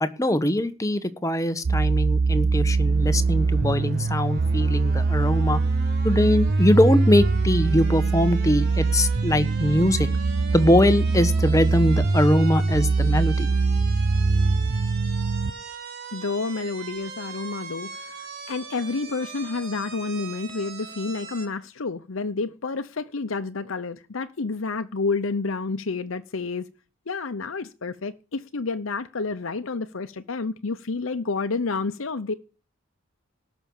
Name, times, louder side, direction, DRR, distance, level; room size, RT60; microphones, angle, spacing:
voice 1, 0.0-5.6 6.0-10.1 10.5-13.5, left 1 dB, 15° left, 1.1 m, -22 dB
sound 1, 1.6-15.5, right 3 dB, 70° right, 0.8 m, -22 dB
sound 2, 2.2-21.5, right 4 dB, 50° right, 4.1 m, -40 dB
voice 2, 16.1-26.6 27.1-32.3, left 4 dB, 75° left, 0.8 m, -29 dB
18.0 x 6.2 x 7.2 m
head